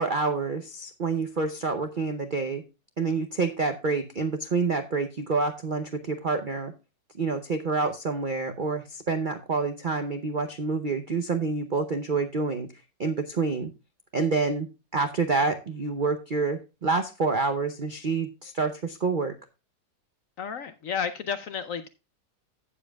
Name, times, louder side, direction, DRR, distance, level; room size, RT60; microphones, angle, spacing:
voice 1, 0.0-2.6 3.0-6.7 7.2-12.7 13.0-13.7 14.1-19.3, right 4 dB, 55° right, 7 dB, 0.5 m, -28 dB
voice 2, 20.4-21.9, left 7 dB, 65° left, 11 dB, 0.8 m, -32 dB
15.5 x 7.3 x 2.3 m, 0.28 s
omnidirectional pair, 1.9 m